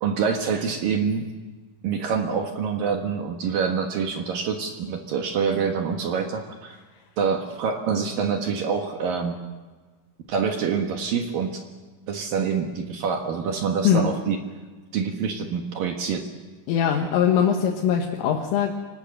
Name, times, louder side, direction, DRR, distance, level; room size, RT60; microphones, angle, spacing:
voice 1, 0.0-1.3 1.8-6.8 7.2-9.4 10.3-11.6 12.1-14.4 14.9-16.3, right 6 dB, 65° right, 4 dB, 2.3 m, -26 dB
voice 2, 16.7-18.7, left 8 dB, 85° left, 1 dB, 4.0 m, -21 dB
25.5 x 19.0 x 7.7 m, 1.3 s
omnidirectional pair, 5.7 m